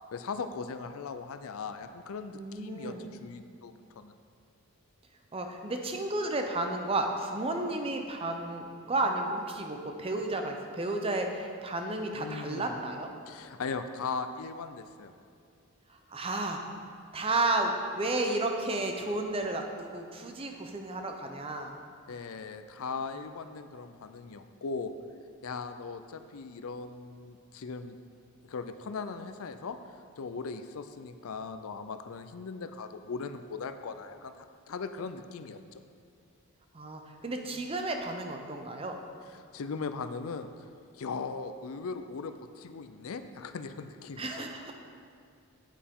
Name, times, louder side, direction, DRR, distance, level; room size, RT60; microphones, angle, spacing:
voice 1, 0.1-4.1 12.1-12.7 13.3-15.1 22.1-24.9 25.4-28.0 28.5-29.8 30.2-35.8 39.3-40.5 40.9-44.4, left 4 dB, 70° left, 9 dB, 0.5 m, -39 dB
voice 2, 2.3-3.0 5.3-13.1 16.1-16.6 17.1-21.7 36.7-39.0 44.2-44.7, right 2 dB, 25° right, 4 dB, 0.6 m, -32 dB
9.1 x 8.6 x 3.7 m, 2.2 s
head